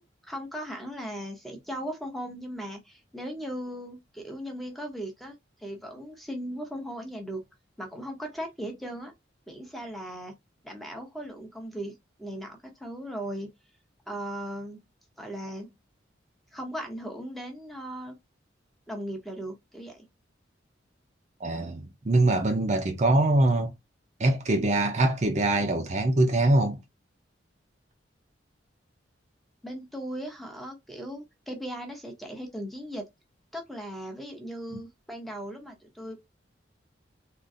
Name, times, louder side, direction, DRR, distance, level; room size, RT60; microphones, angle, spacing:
voice 1, 0.0-7.5 7.8-9.1 9.5-10.3 10.6-13.5 14.1-14.8 15.2-15.7 16.5-18.2 18.9-20.1 29.6-33.1 33.5-36.3, equal, ahead, 0.6 m, -38 dB
voice 2, 21.4-23.7 24.2-26.8, right 2 dB, 35° right, 0.5 m, -23 dB
3.7 x 2.4 x 2.6 m
head